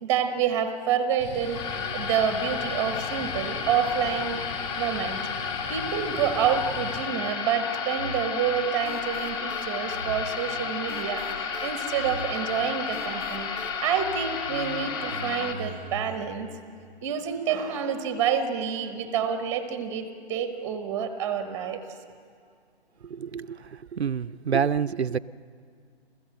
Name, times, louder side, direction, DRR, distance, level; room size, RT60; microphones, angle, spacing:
voice 1, 0.0-1.6 1.9-4.4 4.7-5.2 5.7-13.5 13.8-16.5 17.0-21.8, right 8 dB, 10° right, 10 dB, 0.8 m, -28 dB
sound 1, 1.2-7.0, left 5 dB, 40° left, 4.1 m, -39 dB
sound 2, 1.4-15.5, left 5 dB, 20° left, 1.5 m, -32 dB
sound 3, 8.0-16.2, left 1 dB, 85° left, 3.2 m, -41 dB
voice 2, 23.0-25.2, right 7 dB, 75° right, 12 dB, 0.6 m, -28 dB
28.5 x 15.5 x 7.8 m, 2.1 s
figure-of-eight pair, 135°, 33 cm